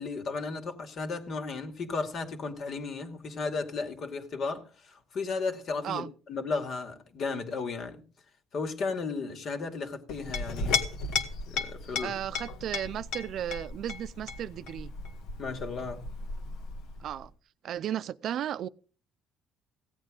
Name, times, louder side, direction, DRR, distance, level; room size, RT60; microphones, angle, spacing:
voice 1, 0.0-8.0 8.5-10.8 11.5-12.1 15.4-16.0, left 4 dB, 55° left, 2.4 m, -34 dB
Chink clink, 10.1-17.2, left 4 dB, 80° left, 1.7 m, -35 dB
voice 2, 12.0-14.9 17.0-17.3 17.6-18.7, right 10 dB, 60° right, 0.5 m, -34 dB
16.5 x 8.8 x 5.2 m
cardioid pair, 105°, 0 cm